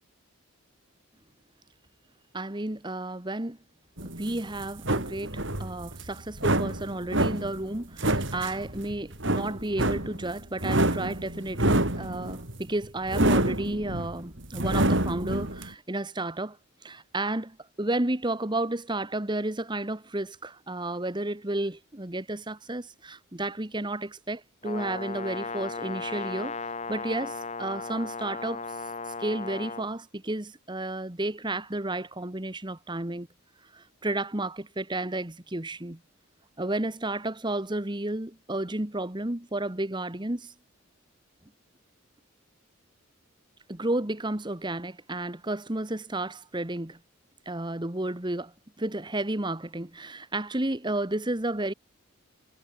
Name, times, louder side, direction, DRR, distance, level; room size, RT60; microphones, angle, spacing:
voice 1, 2.3-3.6 4.0-16.6 16.8-26.6 26.9-28.6 29.2-33.3 33.7-36.0 36.6-40.5 43.7-47.0 47.4-51.7, right 2 dB, 20° right, 1.3 m, -32 dB
sound 1, 4.0-15.7, right 1 dB, 60° right, 4.8 m, -27 dB
Brass instrument, 24.6-29.9, left 4 dB, 30° left, 1.9 m, -36 dB
head